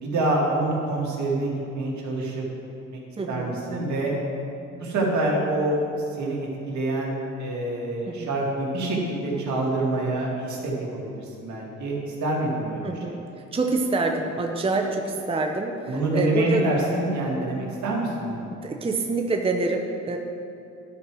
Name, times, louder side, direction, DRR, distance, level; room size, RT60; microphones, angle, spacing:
voice 1, 0.0-2.4 2.9-3.0 3.3-4.1 4.8-5.8 6.2-12.8 15.9-18.4, right 2 dB, 70° right, -2 dB, 2.1 m, -26 dB
voice 2, 3.2-3.6 8.1-8.3 12.8-13.2 13.5-16.7 18.6-20.2, right 3 dB, 20° right, 2 dB, 0.7 m, -26 dB
11.0 x 4.7 x 6.0 m, 2.7 s
cardioid pair, 90°, 30 cm